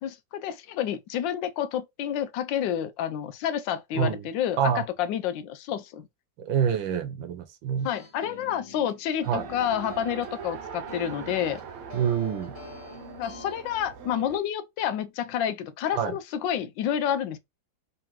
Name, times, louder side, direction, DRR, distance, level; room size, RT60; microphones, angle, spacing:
voice 1, 0.0-6.1 7.8-11.6 13.2-17.4, left 9 dB, 75° left, 1.2 m, -29 dB
voice 2, 6.4-7.9 9.3-9.4 11.9-12.5 15.9-16.1, right 8 dB, 85° right, 1.5 m, -26 dB
sound 1, 7.8-13.5, left 4 dB, 45° left, 0.4 m, -46 dB
Race car auto racing, 9.2-14.4, right 7 dB, 65° right, 0.9 m, -41 dB
3.8 x 3.3 x 3.0 m
omnidirectional pair, 2.1 m